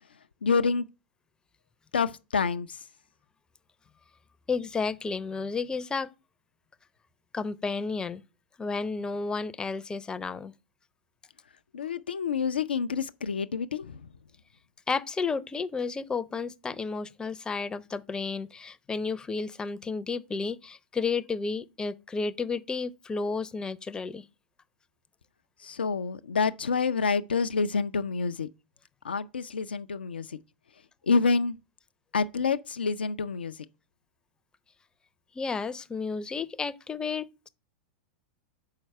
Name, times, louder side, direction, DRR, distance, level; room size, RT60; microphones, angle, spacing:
voice 1, 0.4-0.9 1.9-2.8 11.7-14.1 25.6-28.5 29.0-30.4 31.0-31.6 32.1-33.7, left 5 dB, 85° left, 0.4 m, -28 dB
voice 2, 4.5-6.1 7.3-8.2 8.6-10.5 14.9-24.2 35.3-37.5, left 4 dB, 15° left, 0.5 m, -32 dB
5.7 x 4.5 x 6.4 m
hypercardioid pair, 100°, 5 cm